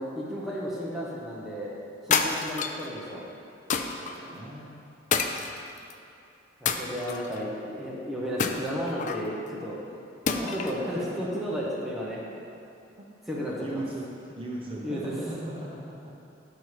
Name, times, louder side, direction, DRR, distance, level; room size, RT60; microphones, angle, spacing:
voice 1, 0.0-1.8 2.0-3.2 6.6-9.8 10.3-12.2 13.3-13.8 14.8-15.1, equal, ahead, -6 dB, 0.9 m, -33 dB
sound 1, 2.1-2.9 3.7-4.1 5.1-5.9 6.7-7.4 8.4-9.3 10.3-10.8, left 6 dB, 40° left, 0.3 m, -28 dB
voice 2, 3.9-4.8 6.7-7.1 10.3-11.7 12.1-12.4 13.0-13.1 13.3-16.1, right 1 dB, 30° right, -3 dB, 0.9 m, -39 dB
6.2 x 5.5 x 4.8 m, 2.8 s
head